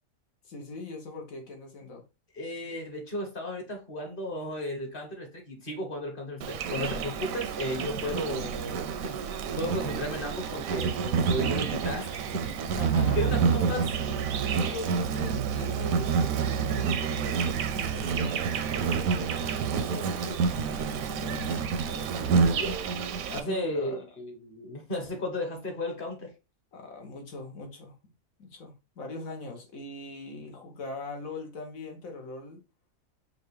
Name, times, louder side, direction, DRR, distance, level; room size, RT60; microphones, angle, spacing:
voice 1, 0.4-2.0 12.8-13.8 14.5-19.3 19.9-22.5 23.3-24.0 26.7-28.0 28.4-32.6, left 2 dB, 85° left, 1.5 m, -41 dB
voice 2, 2.3-12.1 12.3-12.6 13.1-13.9 22.5-22.8 23.3-26.3, left 1 dB, 45° left, 1.3 m, -34 dB
Insect, 6.4-23.4, right 6 dB, 85° right, 1.0 m, -28 dB
5.2 x 2.5 x 3.2 m
omnidirectional pair, 1.4 m